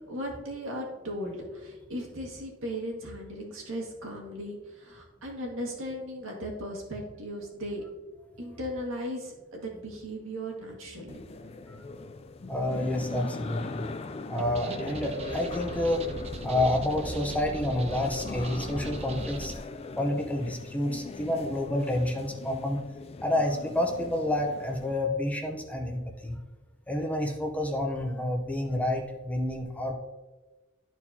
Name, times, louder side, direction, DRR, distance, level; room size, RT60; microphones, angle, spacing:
voice 1, 0.0-7.8 8.4-11.2, equal, 80° right, 0 dB, 1.9 m, -37 dB
sound 1, 11.1-25.0, left 3 dB, 30° left, 0.3 m, -40 dB
voice 2, 12.5-13.9 14.3-16.1 16.4-19.5 20.0-22.8 23.2-26.4 26.9-29.9, left 1 dB, 5° left, 1 dB, 0.8 m, -29 dB
sound 2, 14.4-19.6, right 2 dB, 30° right, 0.6 m, -39 dB
12.5 x 4.5 x 2.8 m, 1.2 s
head